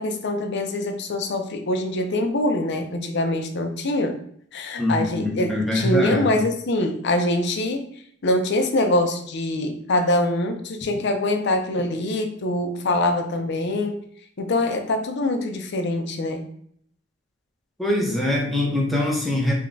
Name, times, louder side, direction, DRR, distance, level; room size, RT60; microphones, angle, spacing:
voice 1, 0.0-4.2 4.5-7.9 8.2-14.0 14.4-16.4, left 1 dB, 55° left, 5 dB, 0.5 m, -24 dB
voice 2, 4.8-6.3 17.8-19.5, left 1 dB, ahead, -3 dB, 0.8 m, -23 dB
3.5 x 2.2 x 3.8 m, 0.63 s
head